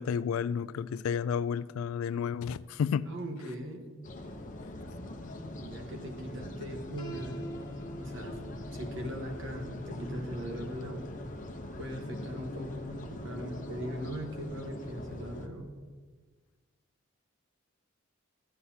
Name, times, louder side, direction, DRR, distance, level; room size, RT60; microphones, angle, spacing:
voice 1, 0.0-3.1, left 7 dB, 85° left, 0.3 m, -31 dB
voice 2, 3.1-3.9 5.6-7.4 8.0-8.4 8.7-11.1 11.8-15.7, equal, 65° right, 1.3 m, -40 dB
sound 1, 4.0-15.5, left 1 dB, 40° left, 0.8 m, -42 dB
Piano, 7.0-12.8, right 2 dB, 25° left, 1.6 m, -49 dB
13.5 x 9.3 x 2.8 m
head